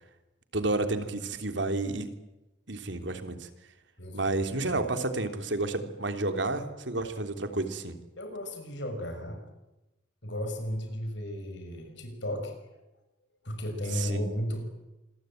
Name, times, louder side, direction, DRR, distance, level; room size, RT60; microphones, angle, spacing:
voice 1, 0.5-2.1 2.7-3.5 4.1-7.9 13.9-14.3, right 2 dB, 65° right, 8 dB, 2.8 m, -31 dB
voice 2, 4.0-4.8 8.2-9.4 10.2-12.5 13.4-14.7, equal, 65° left, 5 dB, 6.5 m, -34 dB
27.0 x 21.5 x 9.0 m, 1.0 s
head